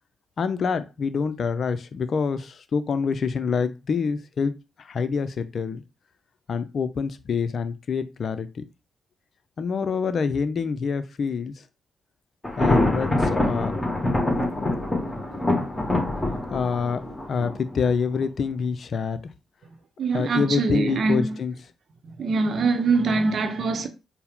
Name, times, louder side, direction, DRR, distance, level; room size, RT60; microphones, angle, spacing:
voice 1, 0.4-4.5 4.8-5.8 6.5-8.6 9.6-11.6 12.6-13.8 16.5-17.0 17.3-19.2 20.1-21.5, left 5 dB, 55° left, 0.5 m, -26 dB
Thunder, 12.4-18.3, left 2 dB, 20° left, 1.8 m, -25 dB
voice 2, 20.0-21.3 22.2-23.9, right 4 dB, 60° right, 0.7 m, -23 dB
4.4 x 2.1 x 3.5 m
hypercardioid pair, 45°, 0 cm